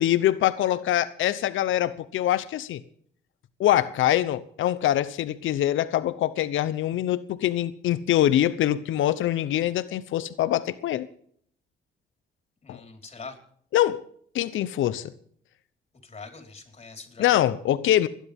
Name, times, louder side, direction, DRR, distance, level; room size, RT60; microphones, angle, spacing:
voice 1, 0.0-2.8 3.6-11.1 12.7-12.8 13.7-14.0 14.3-15.1 17.2-18.1, left 12 dB, 80° left, 0.9 m, -24 dB
voice 2, 12.6-13.4 16.0-17.4, left 4 dB, 30° left, 4.6 m, -43 dB
30.0 x 10.5 x 3.6 m
cardioid pair, 90°, 20 cm